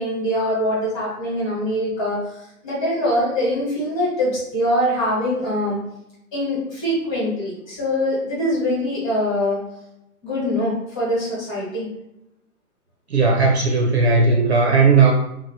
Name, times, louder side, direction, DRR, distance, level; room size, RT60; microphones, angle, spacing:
voice 1, 0.0-2.2 2.6-5.8 6.3-9.6 10.2-11.9, equal, 15° left, -8 dB, 1.1 m, -23 dB
voice 2, 13.1-15.1, right 4 dB, 50° right, 1 dB, 0.5 m, -16 dB
2.7 x 2.0 x 4.0 m, 0.84 s
hypercardioid pair, 150°, 44 cm